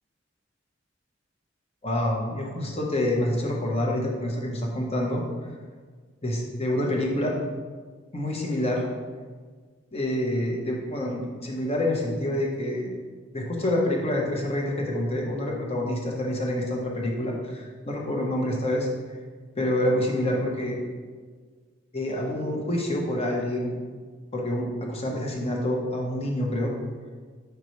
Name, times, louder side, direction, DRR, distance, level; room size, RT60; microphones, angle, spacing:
voice 1, 1.8-5.2 6.2-7.4 8.1-8.9 9.9-12.9 13.3-18.9 19.6-20.8 21.9-23.8 24.3-26.7, left 1 dB, 30° left, -1 dB, 1.1 m, -27 dB
6.8 x 5.8 x 3.2 m, 1.5 s
head